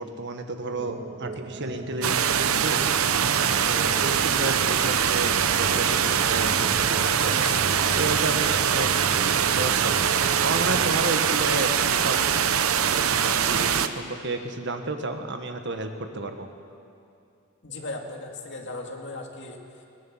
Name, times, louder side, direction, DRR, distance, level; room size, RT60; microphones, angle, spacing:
voice 1, 0.0-2.9 3.6-12.4 12.7-16.5, right 2 dB, 55° right, 6 dB, 1.5 m, -32 dB
sound 1, 0.7-11.0, right 3 dB, 35° right, 0.4 m, -36 dB
sound 2, 2.0-13.9, right 8 dB, 85° right, 0.8 m, -23 dB
voice 2, 17.6-19.6, left 3 dB, 60° left, 2 dB, 2.3 m, -37 dB
20.5 x 17.5 x 7.4 m, 2.5 s
head